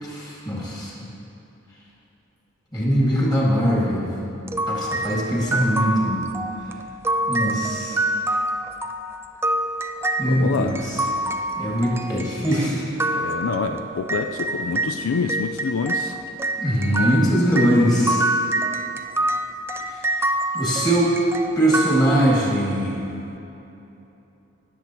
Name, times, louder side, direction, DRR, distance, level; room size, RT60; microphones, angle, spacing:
voice 1, 0.0-0.9 2.7-4.1 4.7-6.3 7.3-8.0 10.2-11.0 11.6-12.8 16.6-18.3 19.9-20.1 20.5-21.1 21.6-23.0, equal, 20° left, -6 dB, 2.2 m, -21 dB
sound 1, 4.5-15.0 15.3-22.7, right 1 dB, 10° right, 0.3 m, -26 dB
voice 2, 10.2-10.8 13.1-16.2, left 5 dB, 75° left, 6 dB, 0.4 m, -26 dB
18.0 x 7.3 x 3.0 m, 3.0 s
head